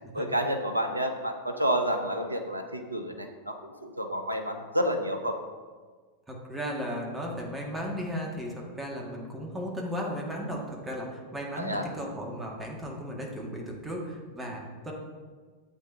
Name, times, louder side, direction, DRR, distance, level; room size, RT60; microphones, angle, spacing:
voice 1, 0.1-5.4 11.6-11.9, right 1 dB, 85° right, 5 dB, 0.9 m, -30 dB
voice 2, 6.3-14.9, equal, 10° right, -1 dB, 2.0 m, -35 dB
12.5 x 8.1 x 2.8 m, 1.5 s
figure-of-eight pair, 90°, 0 cm